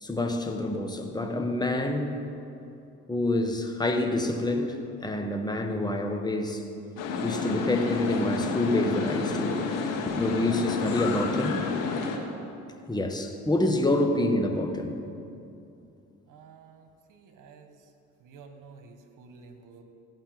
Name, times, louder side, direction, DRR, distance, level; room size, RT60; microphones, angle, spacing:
voice 1, 0.0-2.2 3.1-6.6 7.2-11.7 12.9-15.0, left 1 dB, 10° left, 4 dB, 1.5 m, -27 dB
sound 1, 7.0-12.2, left 4 dB, 80° left, 1.5 m, -30 dB
voice 2, 16.3-17.9 18.2-19.8, right 5 dB, 70° right, 5 dB, 1.6 m, -51 dB
16.5 x 5.7 x 7.7 m, 2.6 s
supercardioid pair, 75°, 32 cm